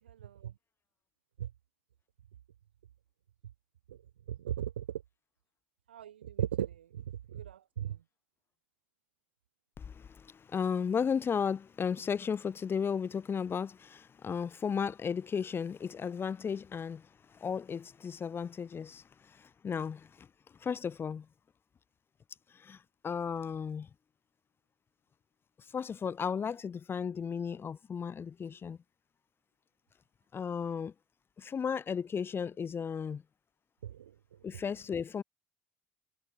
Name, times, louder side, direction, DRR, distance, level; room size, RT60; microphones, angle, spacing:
voice 1, 0.2-0.5 1.4-1.5 4.3-4.8 5.9-6.8 7.3-7.9 33.8-33.9, right 10 dB, 90° right, 1.2 m, -36 dB
voice 2, 9.8-20.3 20.6-21.3 22.5-23.9 25.6-28.8 30.3-30.9 31.4-33.2 34.4-35.2, left 6 dB, 45° left, 1.5 m, -35 dB
hypercardioid pair, 50°, 6 cm